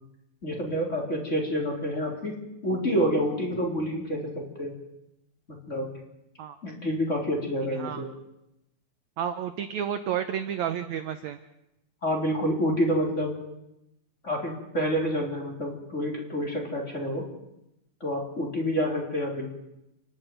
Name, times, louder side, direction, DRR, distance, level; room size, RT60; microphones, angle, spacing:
voice 1, 0.4-2.4 2.6-4.7 5.5-5.9 6.6-8.1 12.0-13.3 14.2-17.2 18.0-19.5, equal, 20° left, 0 dB, 4.0 m, -28 dB
voice 2, 7.7-8.0 9.2-11.4, right 9 dB, 70° right, 9 dB, 1.7 m, -31 dB
29.5 x 11.5 x 9.3 m, 0.88 s
omnidirectional pair, 4.4 m